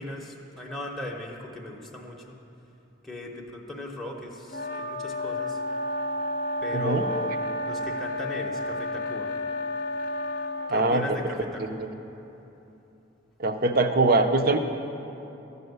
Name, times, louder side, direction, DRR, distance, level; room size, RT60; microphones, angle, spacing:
voice 1, 0.0-2.4 3.0-5.6 6.6-9.3 10.7-11.9, left 2 dB, ahead, -3 dB, 0.8 m, -37 dB
sound 1, 4.5-10.7, left 1 dB, 45° left, 0.6 m, -31 dB
voice 2, 6.7-7.0 10.7-11.2 11.6-11.9 13.4-14.6, right 2 dB, 50° right, 7 dB, 0.6 m, -23 dB
13.0 x 5.5 x 7.9 m, 3.0 s
head